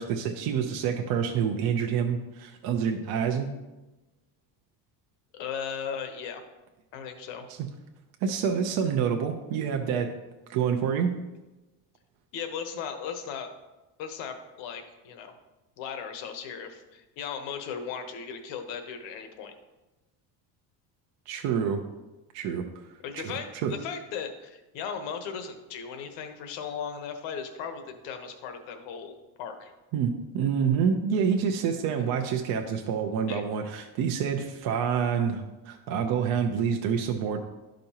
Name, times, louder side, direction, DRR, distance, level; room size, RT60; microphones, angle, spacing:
voice 1, 0.0-3.5 8.2-10.1 10.5-11.1 21.3-21.8 22.3-22.6 23.1-23.7 29.9-37.4, right 7 dB, 55° right, 4 dB, 0.7 m, -27 dB
voice 2, 5.3-6.4 6.9-7.5 12.3-13.5 14.0-15.3 15.8-19.5 23.0-29.7 33.3-33.4, left 7 dB, 80° left, 7 dB, 1.1 m, -37 dB
11.5 x 5.2 x 2.9 m, 1.1 s
cardioid pair, 160°, 43 cm